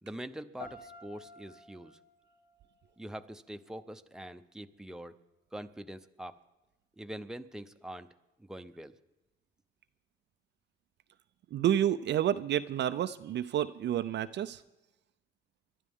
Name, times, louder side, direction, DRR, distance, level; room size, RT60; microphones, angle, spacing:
voice 1, 0.0-2.0 3.0-5.2 5.5-6.4 7.0-8.1 8.4-8.9, right 1 dB, 5° right, 7 dB, 0.8 m, -44 dB
sound 1, 0.6-3.6, left 4 dB, 70° left, 3.2 m, -52 dB
voice 2, 11.5-14.6, right 11 dB, 60° right, 11 dB, 0.5 m, -29 dB
28.0 x 12.0 x 3.6 m, 1.0 s
cardioid pair, 90°, 20 cm